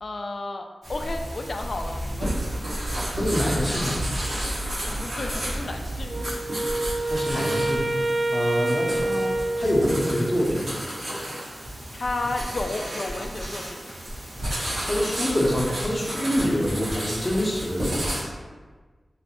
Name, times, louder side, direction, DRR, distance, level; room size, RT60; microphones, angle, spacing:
voice 1, 0.0-2.4 4.9-6.4 11.9-13.8, left 2 dB, 55° left, 4 dB, 0.3 m, -32 dB
sound 1, 0.8-18.2, right 1 dB, 80° right, 1.1 m, -31 dB
voice 2, 3.1-4.1 7.0-7.8 8.3-10.7 14.8-18.1, equal, 25° left, -2 dB, 0.7 m, -26 dB
Wind instrument woodwind instrument, 6.1-10.5, right 2 dB, 40° right, 0.3 m, -27 dB
3.1 x 3.0 x 2.9 m, 1.4 s
wide cardioid pair, 85°, 0 cm